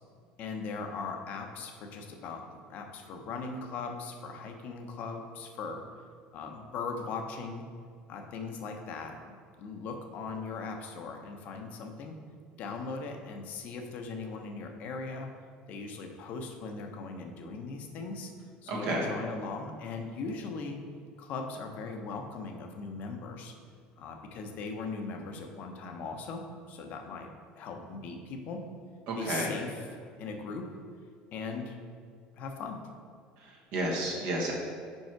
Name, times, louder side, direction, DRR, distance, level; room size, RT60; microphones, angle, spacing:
voice 1, 0.4-5.8 6.3-7.7 8.1-12.2 12.6-15.3 15.7-18.3 18.6-20.8 21.2-23.5 24.0-28.7 29.2-29.9 30.2-30.8 31.3-31.8 32.4-32.8, left 4 dB, 50° left, 4 dB, 0.8 m, -39 dB
voice 2, 18.7-19.0 29.1-29.5 33.4-34.5, right 1 dB, 65° right, -3 dB, 1.4 m, -31 dB
5.3 x 4.8 x 4.6 m, 2.1 s
cardioid pair, 140°, 3 cm